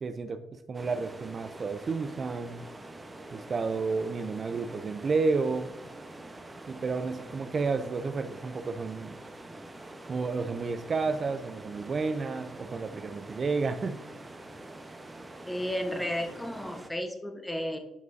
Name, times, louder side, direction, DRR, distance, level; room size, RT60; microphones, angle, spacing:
voice 1, 0.0-2.6 3.3-5.7 6.7-9.2 10.1-14.0, right 4 dB, 40° right, 9 dB, 0.4 m, -31 dB
sound 1, 0.7-16.9, right 2 dB, 20° right, 0.9 m, -46 dB
voice 2, 15.5-17.8, equal, 10° left, 5 dB, 1.1 m, -33 dB
9.4 x 5.3 x 2.7 m, 0.90 s
cardioid pair, 90°, 0 cm